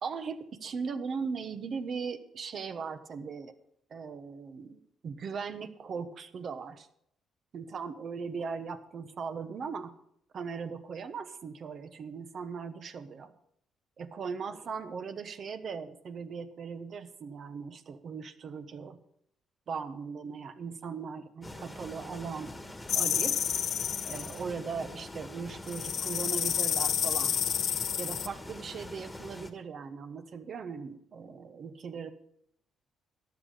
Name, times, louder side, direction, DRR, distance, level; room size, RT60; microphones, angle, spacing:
voice 1, 0.0-3.5 3.9-6.9 7.5-10.0 10.3-13.3 14.0-19.0 19.7-22.6 22.9-23.5 24.0-27.4 28.0-32.1, right 5 dB, 55° right, 9 dB, 1.2 m, -39 dB
sound 1, 21.4-29.5, left 1 dB, 15° left, 1.5 m, -44 dB
sound 2, 22.9-24.4 25.7-28.3, left 9 dB, 65° left, 0.6 m, -30 dB
14.0 x 10.5 x 5.1 m, 0.72 s
cardioid pair, 90°, 0 cm